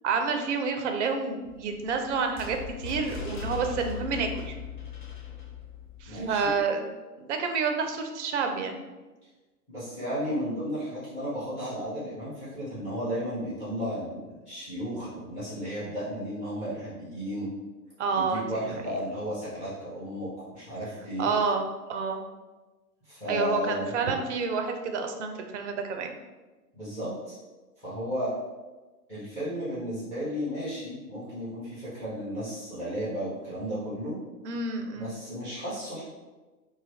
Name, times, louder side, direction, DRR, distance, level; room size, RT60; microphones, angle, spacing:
voice 1, 0.0-4.6 6.0-6.9 7.2-8.8 18.0-18.4 21.2-21.6 21.9-22.2 23.3-26.1 34.4-35.1, right 5 dB, 50° right, 5 dB, 0.5 m, -29 dB
sound 1, 1.5-6.6, left 6 dB, 35° left, 0.4 m, -39 dB
voice 2, 6.1-6.5 9.7-17.5 18.1-21.3 23.0-23.9 26.7-27.3 27.8-28.3 29.1-34.2 34.9-36.0, equal, 15° left, -11 dB, 1.2 m, -34 dB
3.0 x 2.2 x 3.3 m, 1.2 s
figure-of-eight pair, 110°, 47 cm